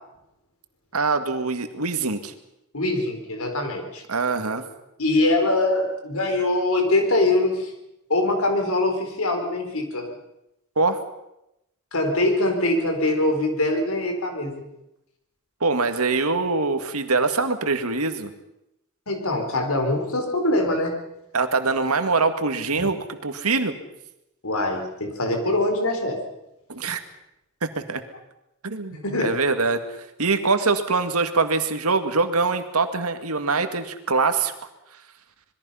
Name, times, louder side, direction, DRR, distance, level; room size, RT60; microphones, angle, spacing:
voice 1, 0.9-2.3 4.1-4.6 10.8-11.0 15.6-18.3 21.3-23.8 26.7-27.0 27.8-28.0 28.6-29.8 30.2-34.5, right 4 dB, 80° right, 8 dB, 2.0 m, -23 dB
voice 2, 2.7-4.0 5.0-7.7 8.1-10.1 11.9-14.6 19.1-20.9 22.8-22.9 24.4-26.2 28.9-29.4, left 2 dB, 70° left, 4 dB, 4.4 m, -23 dB
26.5 x 21.0 x 5.7 m, 0.87 s
head